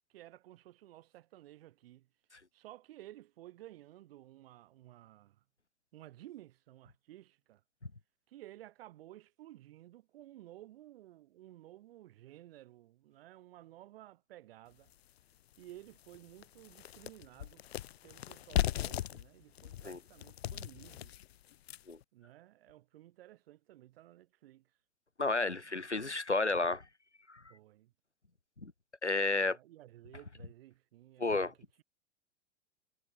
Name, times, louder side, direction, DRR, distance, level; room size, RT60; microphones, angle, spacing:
voice 1, 0.1-2.1 2.5-5.4 5.9-7.6 8.3-14.9 15.6-17.6 18.0-21.2 22.1-24.7 25.2-25.8 27.5-27.9 29.4-31.8, right 15 dB, 55° right, 5.2 m, -55 dB
sound 1, 14.9-15.0 15.5-15.6 16.0-22.0, left 12 dB, 65° left, 0.7 m, -38 dB
voice 2, 25.2-26.8 27.3-27.4 28.6-28.7 29.0-29.6 31.2-31.5, left 3 dB, 90° left, 1.3 m, -31 dB
figure-of-eight pair, 85°, 34 cm